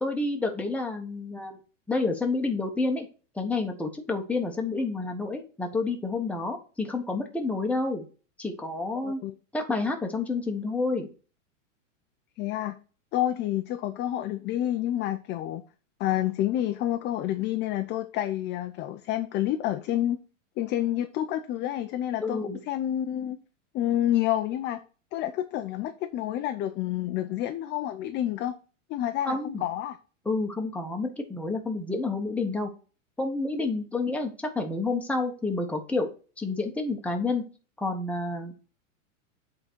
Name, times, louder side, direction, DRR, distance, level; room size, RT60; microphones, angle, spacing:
voice 1, 0.0-1.6 1.9-3.1 3.3-8.1 8.4-9.2 9.5-11.1 22.2-22.6 29.3-29.7 30.2-32.7 33.2-36.1 36.4-37.4 37.8-38.6, left 3 dB, 5° left, 1.1 m, -29 dB
voice 2, 9.0-9.3 12.4-12.8 13.1-15.6 16.0-20.2 20.6-22.4 22.7-23.4 23.7-24.8 25.1-28.5 28.9-30.0, left 12 dB, 30° left, 0.5 m, -29 dB
7.9 x 3.9 x 4.5 m
supercardioid pair, 130°, 39 cm